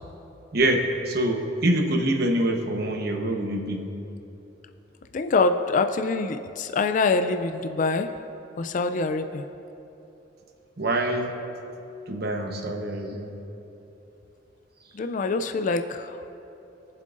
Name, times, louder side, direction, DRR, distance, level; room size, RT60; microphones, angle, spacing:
voice 1, 0.5-3.9 10.8-11.3 12.1-13.3, right 1 dB, 55° right, 2 dB, 1.0 m, -25 dB
voice 2, 5.1-8.1 8.6-9.5 14.9-16.2, left 3 dB, 45° left, 8 dB, 0.3 m, -25 dB
22.0 x 7.5 x 2.5 m, 2.9 s
head